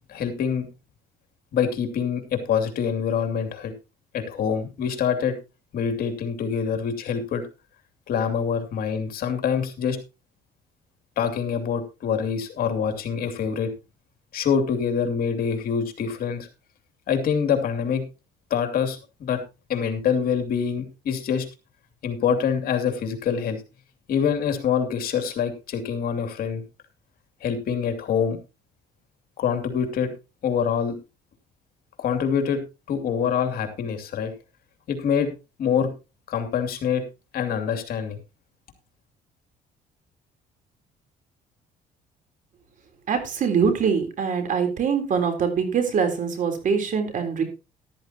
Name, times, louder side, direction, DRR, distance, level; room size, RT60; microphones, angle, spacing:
voice 1, 0.1-0.7 1.5-3.7 4.1-5.4 5.7-7.5 8.1-10.0 11.2-13.7 14.3-16.5 17.1-18.0 18.5-19.4 19.7-21.5 22.0-23.6 24.1-26.6 27.4-28.4 29.4-30.1 30.4-30.9 32.0-32.6 32.9-34.3 34.9-35.3 35.6-35.9 36.3-37.0 37.3-38.2, left 7 dB, 60° left, 6 dB, 2.6 m, -25 dB
voice 2, 43.1-47.4, right 6 dB, 50° right, 6 dB, 3.7 m, -23 dB
13.5 x 12.5 x 2.9 m, 0.29 s
cardioid pair, 110°, 17 cm